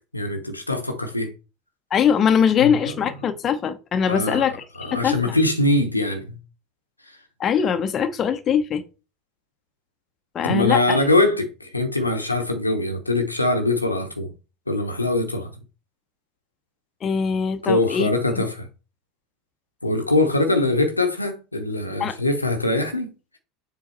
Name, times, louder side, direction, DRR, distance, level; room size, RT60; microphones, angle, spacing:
voice 1, 0.1-1.3 2.6-2.7 4.1-4.5 4.8-6.4 10.4-14.3 14.7-15.5 17.6-18.7 19.8-23.1, left 2 dB, 90° left, 0.9 m, -22 dB
voice 2, 1.9-5.3 7.4-8.8 10.3-11.0 17.0-18.1 18.4-18.5 22.0-22.2, left 7 dB, 35° left, 0.7 m, -22 dB
7.1 x 3.9 x 4.3 m
figure-of-eight pair, 70°, 0 cm